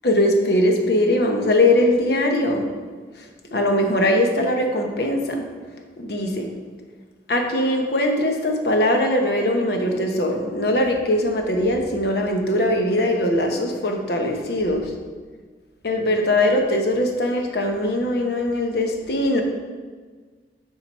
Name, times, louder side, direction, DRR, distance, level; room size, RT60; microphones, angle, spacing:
voice 1, 0.0-2.7 3.5-5.5 6.0-6.5 7.3-14.9 15.8-19.4, left 1 dB, 60° left, 3 dB, 0.9 m, -21 dB
7.2 x 3.9 x 5.4 m, 1.5 s
head